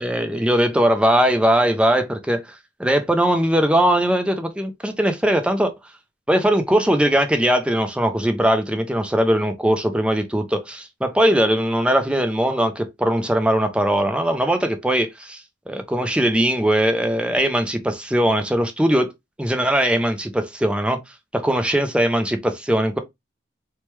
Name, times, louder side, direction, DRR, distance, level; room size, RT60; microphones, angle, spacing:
voice 1, 0.0-5.7 6.3-15.4 15.7-19.1 19.4-21.0 21.3-23.0, right 1 dB, 5° right, 0.4 m, -20 dB
3.1 x 2.2 x 3.0 m
head